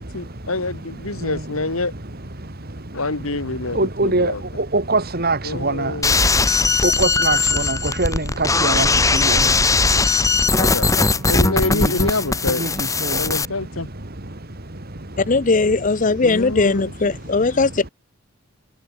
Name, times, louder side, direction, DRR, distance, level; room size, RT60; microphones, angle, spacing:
voice 1, 0.1-1.9 2.9-4.4 5.4-6.2 10.6-12.6 13.2-13.9 16.2-16.9, left 2 dB, 85° left, 3.1 m, -26 dB
voice 2, 3.8-4.3 4.7-5.9 6.8-8.9 9.1-9.4 11.7-11.9 12.6-12.7 13.0-13.2, right 2 dB, 45° right, 2.6 m, -22 dB
sound 1, 6.0-13.5, left 3 dB, 15° left, 1.1 m, -19 dB
voice 3, 15.2-17.9, left 3 dB, 40° left, 0.7 m, -19 dB
head